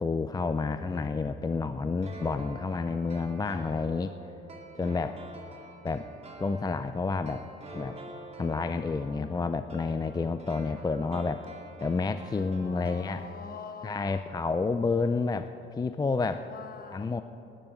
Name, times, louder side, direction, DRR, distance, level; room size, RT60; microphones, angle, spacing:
voice 1, 0.0-4.1 4.7-5.1 5.8-6.1 6.4-7.4 7.7-8.0 8.4-11.4 11.8-13.3 13.8-15.5 15.8-16.5 16.9-17.2, left 4 dB, 20° left, 10 dB, 0.4 m, -29 dB
sound 1, 2.0-13.7 13.9-14.0, right 2 dB, 30° right, 2.4 m, -47 dB
voice 2, 4.9-5.3 12.3-14.4 16.3-17.2, left 5 dB, 50° left, 8 dB, 1.2 m, -46 dB
11.0 x 9.6 x 9.0 m, 2.9 s
cardioid pair, 90°, 20 cm